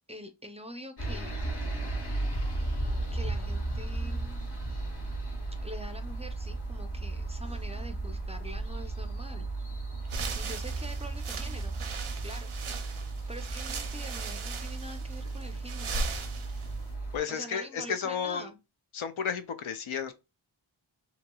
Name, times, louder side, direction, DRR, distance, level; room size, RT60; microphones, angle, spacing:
voice 1, 0.0-1.5 3.1-4.4 5.6-9.5 10.3-11.8 12.2-12.5 13.3-16.0 17.3-18.6, equal, 15° right, 0.5 m, -45 dB
sound 1, 1.0-17.2, right 2 dB, 55° left, 1.1 m, -35 dB
sound 2, 10.0-16.9, right 4 dB, 80° right, 0.6 m, -38 dB
voice 2, 17.1-18.5 18.9-20.1, left 7 dB, 75° left, 0.6 m, -32 dB
3.0 x 2.8 x 2.2 m
wide cardioid pair, 50°, 49 cm